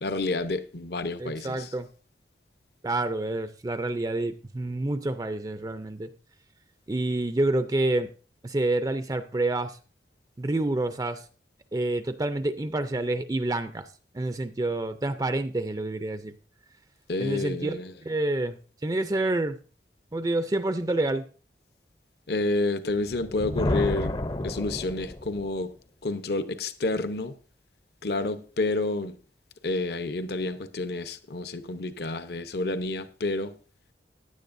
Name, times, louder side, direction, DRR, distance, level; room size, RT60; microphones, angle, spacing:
voice 1, 0.0-1.7 17.1-17.9 22.3-24.1 24.4-25.7 26.0-27.3 28.0-29.2 29.6-33.5, left 2 dB, 60° left, 0.8 m, -29 dB
voice 2, 1.2-1.9 2.8-6.1 6.9-8.1 8.4-9.8 10.4-11.3 11.7-13.9 14.1-16.3 17.2-18.6 18.8-19.6 20.1-21.3, right 2 dB, 20° right, 0.4 m, -28 dB
Thunder, 23.1-25.6, left 1 dB, 25° left, 0.6 m, -31 dB
16.0 x 10.5 x 2.6 m
head